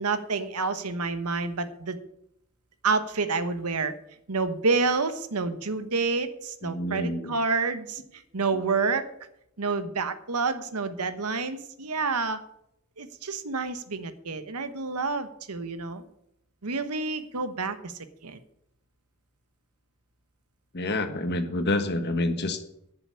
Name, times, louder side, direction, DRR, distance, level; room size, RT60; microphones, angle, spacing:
voice 1, 0.0-2.0 2.8-3.9 4.3-8.0 8.3-9.1 9.6-12.4 13.0-16.0 16.6-17.9 18.2-18.4, right 4 dB, 90° right, 10 dB, 1.2 m, -28 dB
voice 2, 6.6-7.3 20.7-22.6, left 2 dB, 50° left, 8 dB, 1.4 m, -28 dB
11.0 x 7.0 x 8.4 m, 0.75 s
head